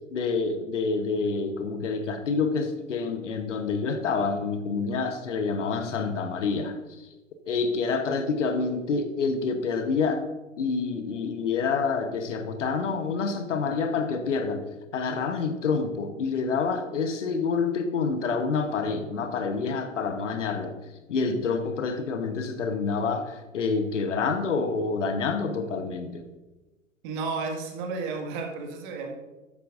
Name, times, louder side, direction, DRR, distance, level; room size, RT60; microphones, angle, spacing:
voice 1, 0.1-7.1 7.5-10.2 10.6-14.6 14.9-20.8 21.1-26.2, left 4 dB, 65° left, 9 dB, 1.1 m, -27 dB
voice 2, 27.0-29.1, right 4 dB, 40° right, 2 dB, 1.9 m, -32 dB
12.5 x 8.8 x 2.6 m, 1.1 s
figure-of-eight pair, 110°, 39 cm